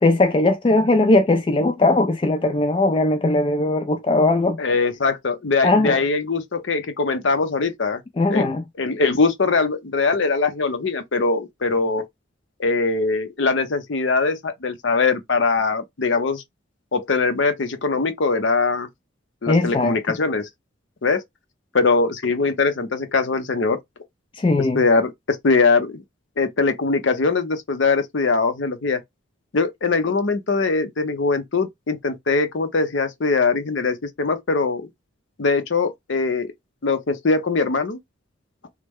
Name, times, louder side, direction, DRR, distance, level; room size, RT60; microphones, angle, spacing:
voice 1, 0.0-4.6 5.6-6.0 8.2-8.6 19.5-20.2 24.3-24.8, left 2 dB, 25° left, 0.3 m, -19 dB
voice 2, 4.6-8.0 8.3-8.5 8.8-12.0 12.6-16.4 16.9-18.9 19.4-20.5 21.0-21.2 21.7-23.8 24.7-26.0 26.4-29.0 29.5-34.9 35.4-36.5 36.8-38.0, left 4 dB, 65° left, 0.6 m, -21 dB
3.1 x 2.1 x 3.4 m
head